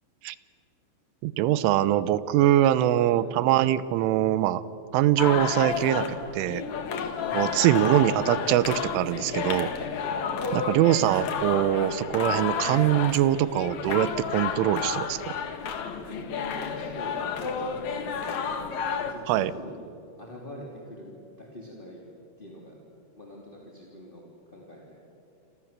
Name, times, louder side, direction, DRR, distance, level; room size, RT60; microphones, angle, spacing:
voice 1, 1.2-4.6 4.9-6.6 7.3-9.7 10.5-15.2 19.3-19.5, right 13 dB, 85° right, 16 dB, 3.3 m, -23 dB
voice 2, 2.7-3.1 7.2-7.4 10.3-10.8 16.0-19.8 20.2-21.1 21.4-22.0 22.4-22.7 23.2-24.2 24.5-25.0, left 1 dB, 15° left, -2 dB, 2.3 m, -44 dB
sound 1, 5.2-19.1, left 6 dB, 55° left, 2.1 m, -31 dB
29.0 x 25.5 x 7.6 m, 2.8 s
omnidirectional pair, 5.5 m